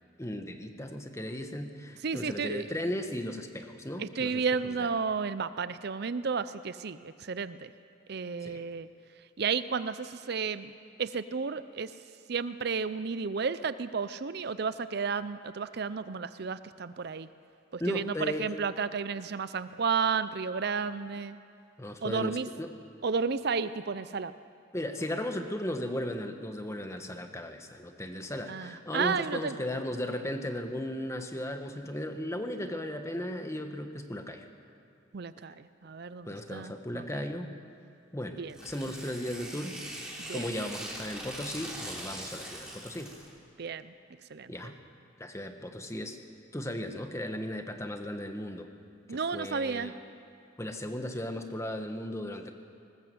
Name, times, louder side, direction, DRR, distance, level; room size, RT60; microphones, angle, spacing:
voice 1, 0.2-4.9 8.4-8.6 17.8-18.5 21.8-22.7 24.7-34.5 36.2-37.5 38.1-39.8 40.3-43.1 44.5-44.8 45.2-46.2 46.5-48.7 49.1-49.9 50.6-52.5, left 1 dB, 15° left, 6 dB, 1.3 m, -36 dB
voice 2, 2.0-2.7 4.0-7.7 8.1-8.9 9.4-10.7 11.0-11.9 12.3-17.3 17.7-21.4 22.0-22.5 23.0-24.3 28.5-29.6 35.1-37.2 38.4-38.6 40.2-40.4 43.6-43.9 44.3-44.5 49.1-49.9, right 5 dB, 55° right, 13 dB, 0.5 m, -32 dB
Tearing, 38.5-43.3, right 1 dB, 5° right, 3.2 m, -42 dB
20.0 x 19.5 x 7.8 m, 2.4 s
head